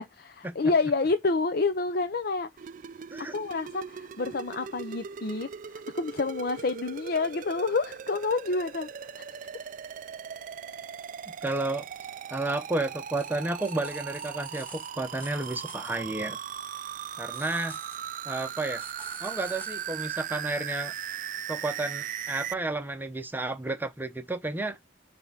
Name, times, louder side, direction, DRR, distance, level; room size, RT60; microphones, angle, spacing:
voice 1, 0.0-2.5 3.2-8.9 9.2-9.3, left 3 dB, 55° left, 0.6 m, -28 dB
sound 1, 2.6-22.5, right 8 dB, 45° right, 0.4 m, -39 dB
voice 2, 11.4-11.9 12.3-16.4 17.2-17.8 18.2-18.8 19.2-20.9 21.5-24.8, right 2 dB, 10° right, 0.8 m, -32 dB
sound 2, 12.6-12.7 13.0-16.0 17.2-20.1 20.8-20.9, equal, 10° left, 2.9 m, -50 dB
6.9 x 3.5 x 5.7 m
head